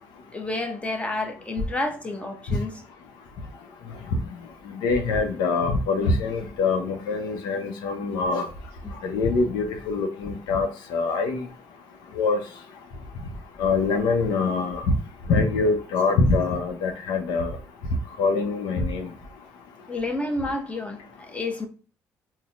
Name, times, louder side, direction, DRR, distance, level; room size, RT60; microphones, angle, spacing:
voice 1, 0.3-2.8 8.8-8.9 19.9-21.7, left 2 dB, 15° left, 0.9 m, -30 dB
voice 2, 4.7-8.5 9.0-11.4 12.1-12.4 13.6-14.9 15.3-17.5 18.2-19.1, left 4 dB, 80° left, 0.6 m, -24 dB
4.0 x 2.1 x 2.4 m
hypercardioid pair, 55°, 7 cm